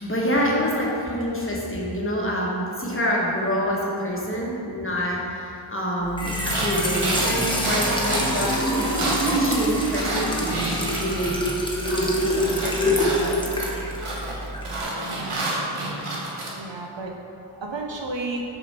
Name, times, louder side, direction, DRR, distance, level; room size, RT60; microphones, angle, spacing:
voice 1, 0.0-13.9, equal, 25° left, -4 dB, 1.2 m, -27 dB
Trickle dribble / Fill (with liquid), 6.0-14.8, equal, 10° left, 0.9 m, -26 dB
sound 1, 6.3-11.6 11.8-16.5, right 2 dB, 80° right, 1.2 m, -29 dB
voice 2, 14.9-15.5 16.6-17.2 17.5-18.4, right 2 dB, 60° right, 0 dB, 0.8 m, -33 dB
6.7 x 4.2 x 4.3 m, 2.7 s
wide cardioid pair, 65°, 50 cm